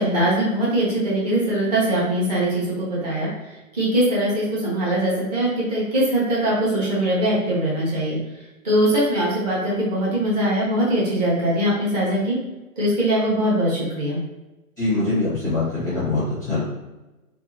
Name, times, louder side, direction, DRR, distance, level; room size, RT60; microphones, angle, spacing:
voice 1, 0.0-3.3 3.7-8.2 8.6-12.4 12.8-14.2, right 1 dB, 25° right, -6 dB, 0.7 m, -21 dB
voice 2, 14.8-16.6, left 2 dB, 15° left, -11 dB, 0.5 m, -23 dB
2.6 x 2.1 x 2.4 m, 1.1 s
figure-of-eight pair, 135°, 45 cm